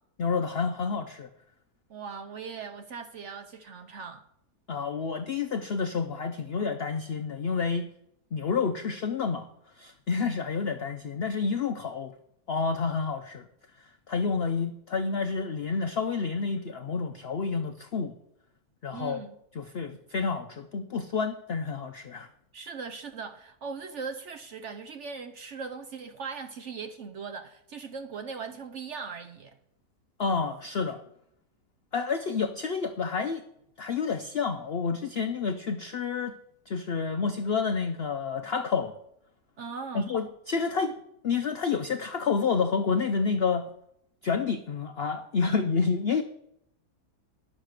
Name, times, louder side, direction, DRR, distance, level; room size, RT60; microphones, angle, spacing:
voice 1, 0.2-1.3 4.7-7.9 8.3-9.5 9.8-12.1 12.5-13.4 14.1-18.1 18.8-19.2 19.5-22.3 30.2-31.0 31.9-33.4 33.8-36.4 36.7-38.9 39.9-40.9 41.2-43.7 44.2-46.2, left 5 dB, 70° left, 0.6 m, -29 dB
voice 2, 1.9-4.2 18.9-19.4 22.5-29.6 39.6-40.1, right 5 dB, 60° right, 0.8 m, -39 dB
10.5 x 6.5 x 6.5 m
omnidirectional pair, 1.8 m